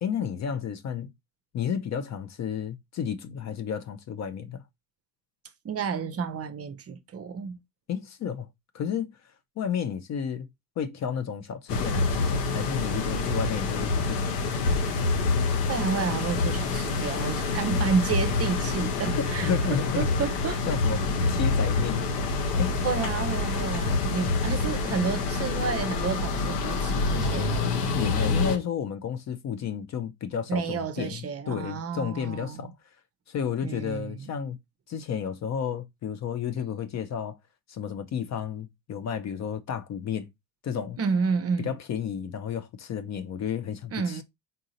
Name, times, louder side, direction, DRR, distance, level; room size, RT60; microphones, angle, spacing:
voice 1, 0.0-1.1 1.5-4.6 7.9-8.5 8.7-9.1 9.6-10.5 10.8-14.6 19.1-20.1 20.7-22.0 22.6-22.8 27.9-32.7 33.3-34.6 34.9-37.4 37.7-40.3 40.6-41.0 41.6-44.2, left 7 dB, 35° left, 0.7 m, -32 dB
voice 2, 5.6-7.6 15.7-20.7 22.8-27.7 30.5-32.7 33.6-34.3 41.0-41.8 43.9-44.2, right 5 dB, 30° right, 0.7 m, -30 dB
sound 1, 11.7-28.6, left 3 dB, 70° left, 1.1 m, -27 dB
3.9 x 3.7 x 2.7 m
hypercardioid pair, 65°, 48 cm